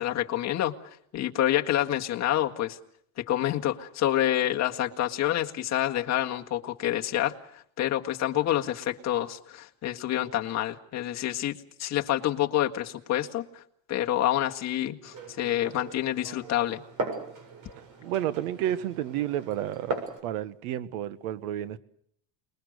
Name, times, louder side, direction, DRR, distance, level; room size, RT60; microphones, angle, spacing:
voice 1, 0.0-2.8 3.2-13.6 13.9-16.8, left 13 dB, 40° left, 1.8 m, -28 dB
Glass, 15.1-20.2, right 3 dB, 45° right, 7.6 m, -38 dB
voice 2, 18.0-19.9 20.2-21.8, right 12 dB, 90° right, 1.6 m, -31 dB
28.5 x 21.5 x 6.7 m
cardioid pair, 135°, 42 cm